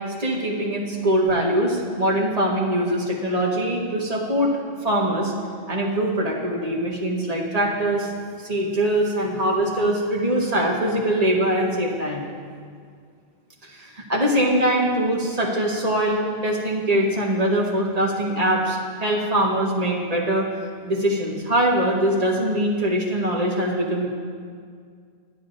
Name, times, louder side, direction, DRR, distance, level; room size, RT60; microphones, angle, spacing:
voice 1, 0.2-4.6 4.8-5.3 5.7-8.1 8.4-12.3 13.6-20.5 20.8-24.1, right 1 dB, 40° right, -3 dB, 1.3 m, -22 dB
11.0 x 10.0 x 2.6 m, 2.1 s
omnidirectional pair, 1.0 m